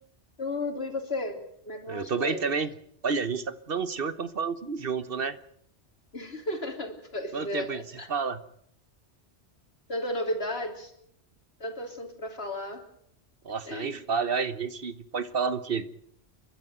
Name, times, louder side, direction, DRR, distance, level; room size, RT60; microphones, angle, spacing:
voice 1, 0.4-1.4 1.6-2.4 6.1-8.1 9.9-10.9 11.6-12.8 13.7-14.0, left 1 dB, 65° left, 5 dB, 3.3 m, -34 dB
voice 2, 1.9-2.7 3.0-5.4 7.3-7.8 8.1-8.4 13.4-15.9, right 5 dB, 55° right, 14 dB, 1.2 m, -30 dB
30.0 x 11.5 x 9.1 m, 0.70 s
omnidirectional pair, 1.1 m